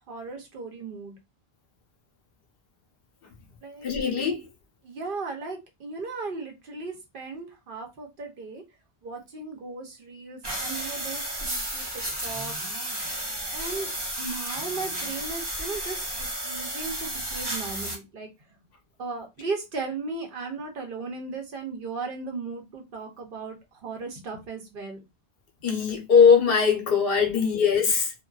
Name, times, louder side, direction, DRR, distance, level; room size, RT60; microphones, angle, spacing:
voice 1, 0.1-1.1 3.6-3.9 4.8-8.6 9.0-12.6 13.5-13.9 14.2-18.3 19.0-25.0 27.3-27.4, right 4 dB, 60° right, 0.8 m, -36 dB
voice 2, 3.8-4.4 25.6-28.1, left 6 dB, 70° left, 0.9 m, -20 dB
sound 1, 10.4-18.0, right 1 dB, 30° right, 0.6 m, -32 dB
2.5 x 2.2 x 2.2 m
omnidirectional pair, 1.0 m